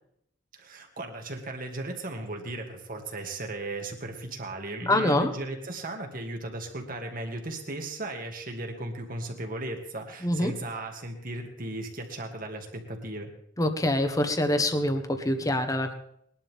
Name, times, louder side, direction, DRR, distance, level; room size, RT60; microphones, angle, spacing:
voice 1, 0.5-13.3, right 2 dB, 50° right, 3 dB, 2.3 m, -36 dB
voice 2, 4.9-5.3 10.2-10.5 13.6-15.9, left 1 dB, 20° left, 7 dB, 1.3 m, -25 dB
20.5 x 11.5 x 3.7 m, 0.72 s
head